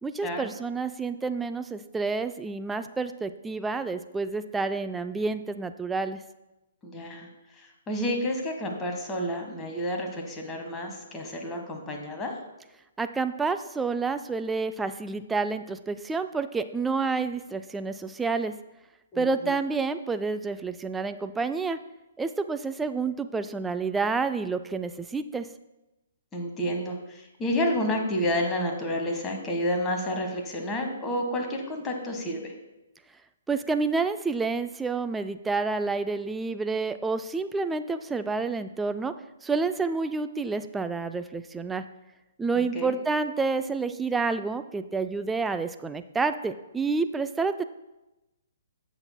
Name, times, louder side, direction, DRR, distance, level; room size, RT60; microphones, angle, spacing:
voice 1, 0.0-6.2 13.0-18.5 19.2-21.8 22.2-25.5 33.5-39.1 39.4-41.8 42.4-47.6, right 4 dB, 10° right, 9 dB, 0.4 m, -29 dB
voice 2, 6.8-7.3 7.6-12.3 19.1-19.5 26.3-32.5 42.5-43.0, equal, 15° left, 2 dB, 1.4 m, -30 dB
16.5 x 6.0 x 2.2 m, 0.99 s
figure-of-eight pair, 125°, 0 cm